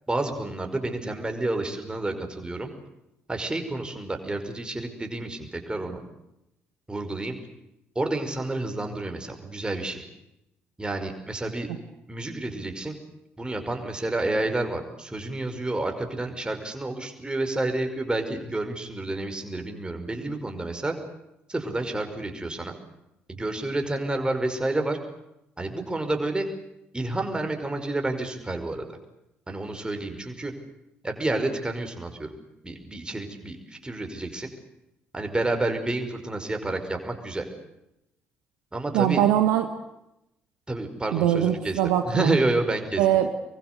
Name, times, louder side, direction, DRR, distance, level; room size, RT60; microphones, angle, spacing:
voice 1, 0.1-2.7 3.3-6.0 6.9-7.4 8.0-10.0 10.8-11.7 12.1-13.0 13.4-20.9 21.5-22.7 23.3-25.0 25.6-26.5 26.9-29.0 29.5-30.5 31.0-32.3 32.6-34.5 35.1-37.5 38.7-39.2 40.7-41.8 42.1-43.0, right 2 dB, 15° right, 5 dB, 5.4 m, -29 dB
voice 2, 38.9-39.7 41.1-42.4 43.0-43.3, right 11 dB, 65° right, 7 dB, 1.5 m, -22 dB
26.0 x 23.0 x 8.2 m, 0.86 s
figure-of-eight pair, 45°, 6 cm